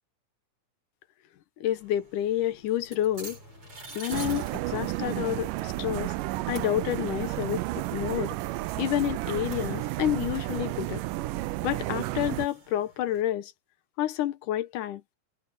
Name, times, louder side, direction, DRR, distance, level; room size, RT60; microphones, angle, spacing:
voice 1, 1.6-3.4 3.9-6.1 6.5-8.4 8.8-11.0 11.6-13.5 14.0-15.0, left 12 dB, 80° left, 2.4 m, -29 dB
sound 1, 1.7-13.2, right 2 dB, 40° right, 8.4 m, -49 dB
sound 2, 2.1-8.7, left 2 dB, 40° left, 7.5 m, -57 dB
sound 3, 4.1-12.5, right 19 dB, 85° right, 2.2 m, -32 dB
omnidirectional pair, 3.8 m